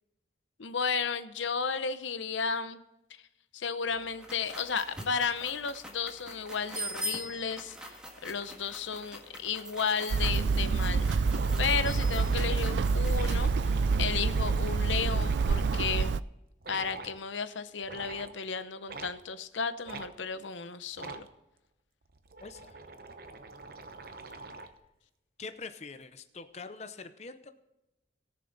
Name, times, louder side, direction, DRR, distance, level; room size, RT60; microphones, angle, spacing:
voice 1, 0.6-2.8 3.5-7.8 8.2-11.1 11.6-16.2 16.7-21.3, left 6 dB, 85° left, 12 dB, 0.7 m, -33 dB
sound 1, 3.9-13.5, equal, 5° right, 1.7 m, -43 dB
Hammer, 10.1-16.2, right 4 dB, 75° right, 0.3 m, -27 dB
sound 2, 11.3-16.1 16.6-17.2 17.8-18.4 18.9-19.1 19.9-20.1 20.9-21.3 22.0-24.8, right 3 dB, 50° right, 0.9 m, -45 dB
voice 2, 22.4-22.8 24.5-24.7 25.4-27.5, left 4 dB, 35° left, 10 dB, 0.6 m, -44 dB
18.0 x 6.9 x 4.0 m, 0.95 s
head